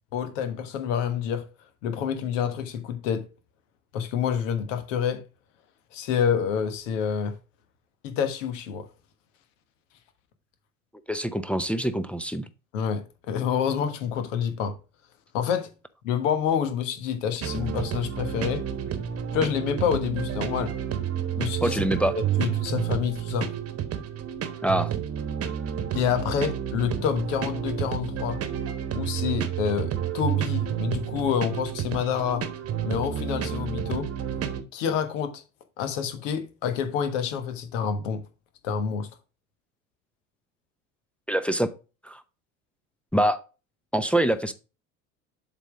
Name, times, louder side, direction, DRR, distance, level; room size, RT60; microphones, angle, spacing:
voice 1, 0.1-1.4 1.8-3.2 3.9-5.2 5.9-7.3 8.0-8.8 12.7-14.7 15.3-15.7 16.0-18.6 19.3-20.7 21.3-21.8 22.4-23.5 25.9-28.4 28.9-32.4 32.8-34.1 34.7-35.4 35.8-38.2 38.6-39.1, left 7 dB, 65° left, 1.5 m, -27 dB
voice 2, 11.1-12.5 21.6-22.1 24.6-24.9 41.3-41.7 42.0-42.2 43.1-43.4 43.9-44.5, right 1 dB, 5° left, 0.6 m, -25 dB
sound 1, 17.4-34.6, right 9 dB, 35° right, 1.2 m, -30 dB
7.4 x 4.1 x 5.0 m
figure-of-eight pair, 70°, 42 cm